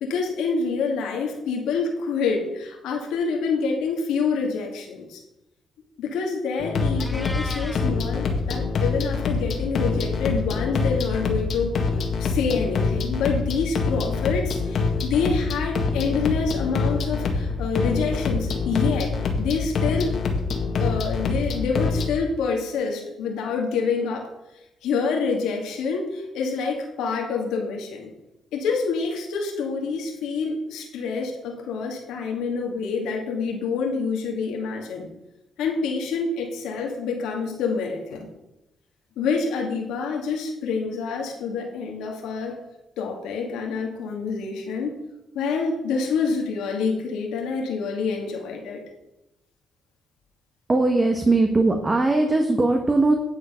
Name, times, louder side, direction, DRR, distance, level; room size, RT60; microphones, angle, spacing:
voice 1, 0.0-5.2 6.0-11.8 12.2-19.1 19.4-20.2 20.8-24.3 24.8-28.1 28.5-35.1 35.6-38.3 39.2-42.5 43.0-44.9 45.3-48.8, left 5 dB, 85° left, 0 dB, 2.2 m, -27 dB
sound 1, 6.6-22.1, left 4 dB, 60° left, 1.8 m, -25 dB
Meow, 7.0-7.9, left 1 dB, 10° left, 1.2 m, -36 dB
voice 2, 50.7-53.1, right 2 dB, 25° right, 4 dB, 1.3 m, -20 dB
10.0 x 7.4 x 5.7 m, 0.94 s
cardioid pair, 90°, 0 cm